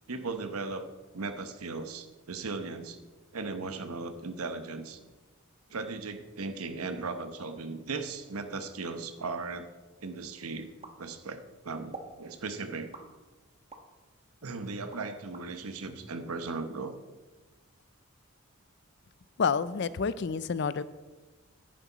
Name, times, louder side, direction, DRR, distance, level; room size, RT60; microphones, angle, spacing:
voice 1, 0.1-0.9 1.1-3.0 3.3-5.0 5.7-9.7 10.0-10.7 11.0-12.9 14.4-16.9, right 3 dB, 85° right, 9 dB, 1.0 m, -37 dB
sound 1, 10.8-11.5 11.9-12.2 12.9-13.9 14.4-15.5, right 3 dB, 25° right, 1.0 m, -47 dB
voice 2, 19.4-20.8, left 5 dB, 50° left, 16 dB, 0.4 m, -29 dB
10.0 x 9.7 x 4.1 m, 1.2 s
head